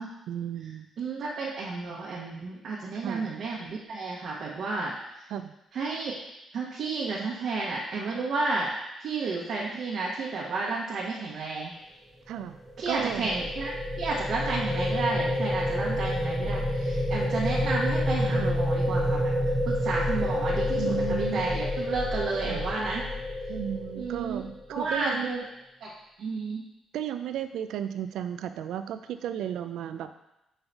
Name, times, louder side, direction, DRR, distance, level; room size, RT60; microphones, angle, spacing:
voice 1, 0.3-0.9 3.0-3.3 5.3-5.5 12.3-12.6 12.9-13.3 18.3-18.6 20.8-21.6 22.4-22.6 23.5-25.3 26.9-30.1, right 10 dB, 80° right, 10 dB, 0.3 m, -34 dB
voice 2, 1.0-4.9 5.7-6.1 6.5-8.7 9.0-11.7 12.8-13.7 14.0-19.2 19.7-23.1 23.9-24.4 24.7-25.4 25.8-25.9 26.2-26.6, right 3 dB, 65° right, -5 dB, 1.1 m, -31 dB
sound 1, 12.5-24.7, left 1 dB, 5° left, 0.8 m, -28 dB
5.4 x 3.9 x 4.5 m, 0.89 s
cardioid pair, 90°, 0 cm